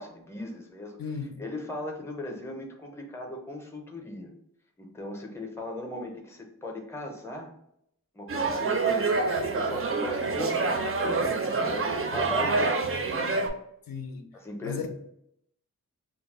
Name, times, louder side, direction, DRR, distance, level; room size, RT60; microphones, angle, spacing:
voice 1, 0.0-1.0 1.4-4.3 4.8-7.5 8.1-10.7 11.0-13.2 14.4-14.9, left 1 dB, 10° left, 0.5 m, -38 dB
voice 2, 1.0-1.4 13.9-14.3 14.6-14.9, left 6 dB, 80° left, 0.5 m, -35 dB
sound 1, 8.3-13.5, right 3 dB, 40° right, 0.4 m, -27 dB
2.3 x 2.0 x 3.5 m
wide cardioid pair, 85°, 34 cm